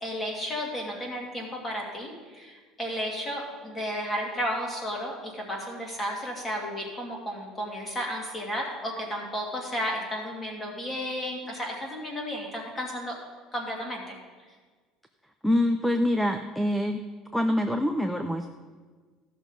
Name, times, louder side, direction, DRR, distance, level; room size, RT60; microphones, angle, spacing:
voice 1, 0.0-13.2 13.5-14.2, equal, 15° left, 0 dB, 2.1 m, -33 dB
voice 2, 15.4-17.0 17.3-18.5, left 1 dB, ahead, 6 dB, 0.4 m, -25 dB
14.0 x 6.2 x 5.3 m, 1.5 s
cardioid pair, 150°, 0 cm